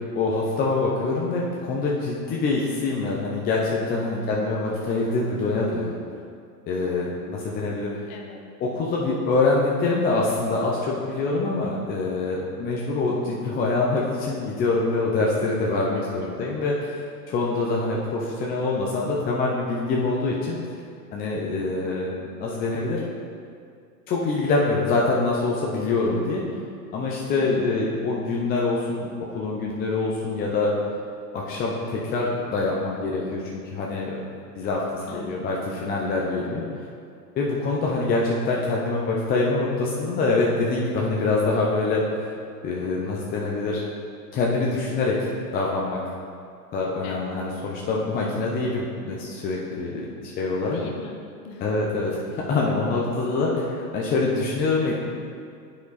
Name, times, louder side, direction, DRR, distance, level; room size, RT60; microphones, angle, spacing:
voice 1, 0.1-5.9 6.7-7.9 8.6-17.0 17.3-20.6 21.1-23.0 24.1-26.4 26.9-29.1 29.3-30.7 31.3-34.2 34.6-36.6 37.4-42.0 42.6-43.8 44.3-46.0 46.7-50.8 51.6-54.9, left 3 dB, 20° left, -3 dB, 0.5 m, -25 dB
voice 2, 4.0-4.6 8.1-8.4 15.8-16.4 27.3-27.7 35.1-35.6 47.0-47.4 50.7-51.6, left 4 dB, 35° left, 2 dB, 1.1 m, -41 dB
8.0 x 5.0 x 4.0 m, 2.3 s
hypercardioid pair, 115°, 48 cm